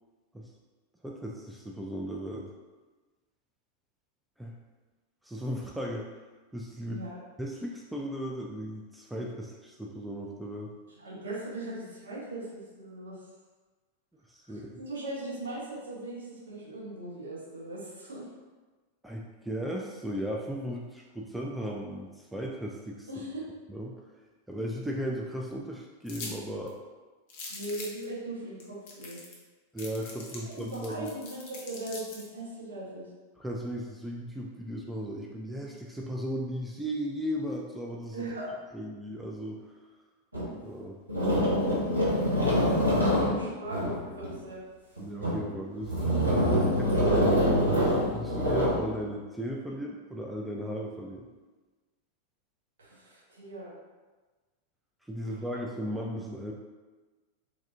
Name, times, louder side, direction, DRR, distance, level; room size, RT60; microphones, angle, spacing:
voice 1, 1.0-2.5 4.4-4.5 5.2-6.1 6.5-7.1 7.4-10.7 14.3-14.8 19.0-23.1 23.7-24.0 24.5-26.8 29.7-31.1 33.4-38.3 38.7-39.6 40.6-41.0 42.9-43.3 45.0-46.4 46.8-51.3 55.1-56.5, equal, 5° right, -2 dB, 0.3 m, -36 dB
voice 2, 6.8-7.2 11.0-13.2 14.5-18.3 23.1-23.5 27.5-29.2 30.4-33.1 38.1-38.5 43.0-44.6 52.8-53.7, right 1 dB, 65° right, -7 dB, 1.2 m, -39 dB
sound 1, 26.1-26.3 26.7-26.8 27.3-28.0 28.6-28.7 28.9-29.4 29.8-32.3, left 3 dB, 50° left, 0.6 m, -42 dB
sound 2, 40.3-40.5 41.1-44.3 45.0-45.5 45.8-48.9, equal, 85° right, 0.7 m, -25 dB
3.3 x 2.3 x 2.6 m, 1.3 s
figure-of-eight pair, 90°, 0 cm